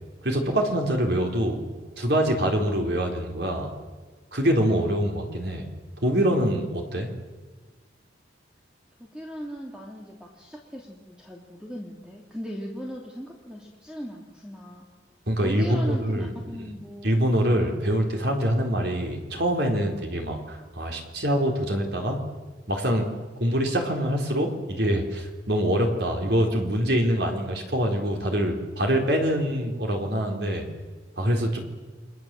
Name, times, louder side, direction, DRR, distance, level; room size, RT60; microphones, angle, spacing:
voice 1, 0.2-1.6 2.0-3.7 4.3-5.7 6.0-7.1 15.3-16.3 16.6-16.7 17.0-22.2 22.7-23.1 23.4-30.6 31.2-31.6, equal, 60° right, 2 dB, 4.0 m, -24 dB
voice 2, 9.0-14.9 15.4-17.3, equal, 5° right, -1 dB, 2.8 m, -38 dB
29.5 x 24.0 x 7.7 m, 1.4 s
head